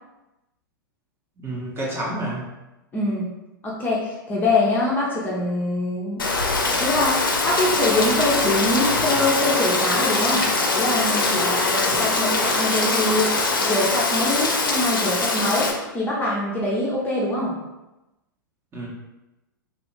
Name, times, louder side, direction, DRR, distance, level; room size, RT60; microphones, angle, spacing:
voice 1, 1.4-2.5 11.9-12.0 18.7-18.9, right 1 dB, 20° right, -4 dB, 0.8 m, -29 dB
voice 2, 2.9-3.3 3.6-6.3 6.8-10.5 10.7-17.6, left 2 dB, 15° left, -5 dB, 0.6 m, -24 dB
Rain, 6.2-15.7, left 3 dB, 80° left, 0.5 m, -22 dB
2.7 x 2.4 x 3.0 m, 1.0 s
figure-of-eight pair, 105°, 11 cm